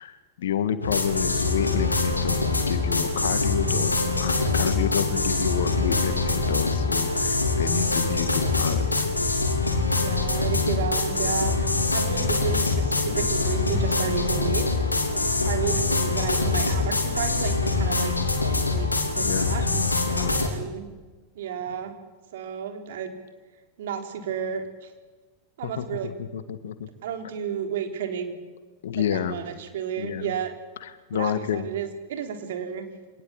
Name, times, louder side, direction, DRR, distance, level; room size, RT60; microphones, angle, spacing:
voice 1, 0.0-9.1 15.2-15.5 19.1-19.9 20.1-20.7 25.6-26.9 28.8-29.4 30.0-30.3 30.8-31.7, left 9 dB, 65° left, 12 dB, 1.8 m, -30 dB
sound 1, 0.8-20.5, left 3 dB, 90° left, 3.5 m, -24 dB
voice 2, 10.0-18.1 18.5-18.9 19.2-19.6 20.1-20.9 21.4-22.0 22.3-23.1 23.8-24.9 25.6-26.1 27.0-28.3 28.9-30.5 31.1-32.9, right 8 dB, 65° right, 5 dB, 3.8 m, -32 dB
25.5 x 19.0 x 8.6 m, 1.2 s
figure-of-eight pair, 90°, 0 cm